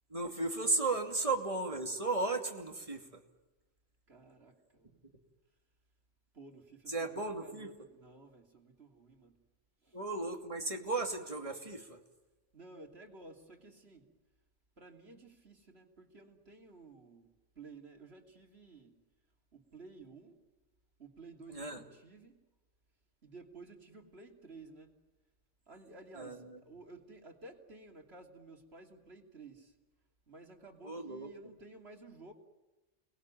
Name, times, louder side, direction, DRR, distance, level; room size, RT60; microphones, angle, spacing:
voice 1, 0.1-3.0 6.9-7.7 9.9-12.0 21.5-21.8 26.2-26.6 30.8-31.3, right 3 dB, 30° right, 4 dB, 2.7 m, -35 dB
voice 2, 4.1-5.0 6.3-9.4 9.8-10.0 12.5-14.1 14.8-17.3 17.5-19.0 19.5-20.4 21.0-22.4 23.2-25.0 25.7-29.7 30.3-32.3, right 3 dB, 60° right, 3 dB, 3.3 m, -54 dB
29.5 x 20.5 x 9.2 m, 1.1 s
omnidirectional pair, 1.2 m